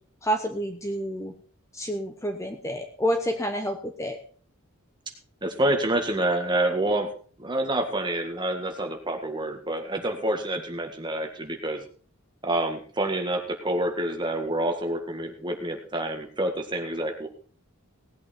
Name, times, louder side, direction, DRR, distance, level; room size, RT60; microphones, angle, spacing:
voice 1, 0.2-1.3 1.7-4.2, equal, 15° left, 6 dB, 0.9 m, -29 dB
voice 2, 5.4-7.1 7.4-11.8 12.4-17.3, right 1 dB, 20° right, 4 dB, 1.8 m, -27 dB
18.0 x 8.4 x 4.4 m, 0.43 s
head